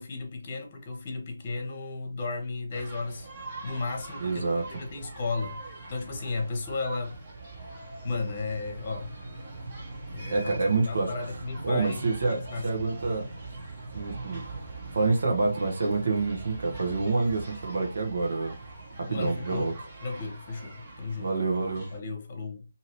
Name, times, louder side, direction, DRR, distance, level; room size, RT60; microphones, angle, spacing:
voice 1, 0.0-4.4 4.7-7.4 8.0-9.1 10.1-10.6 10.9-12.8 19.1-19.7 20.0-21.3 21.9-22.6, left 3 dB, 35° left, 1.0 m, -34 dB
sound 1, 2.7-22.0, right 3 dB, 35° right, 1.2 m, -42 dB
voice 2, 4.2-4.7 10.3-11.1 11.6-13.3 13.9-14.5 14.9-18.6 19.0-19.7 21.2-21.9, right 3 dB, 60° right, 1.0 m, -27 dB
2.8 x 2.7 x 3.0 m
figure-of-eight pair, 155°, 0 cm